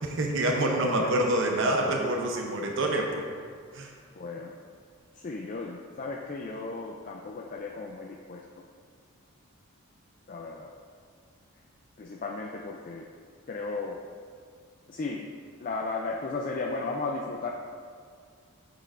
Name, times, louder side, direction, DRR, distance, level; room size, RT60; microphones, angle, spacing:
voice 1, 0.0-3.3 3.7-3.9, right 1 dB, 60° right, 1 dB, 0.7 m, -26 dB
voice 2, 4.1-4.6 5.1-8.4 10.3-10.7 12.0-13.0 13.5-14.0 14.9-15.3 15.6-17.5, left 3 dB, 35° left, 0 dB, 0.3 m, -35 dB
7.9 x 6.6 x 2.5 m, 2.1 s
head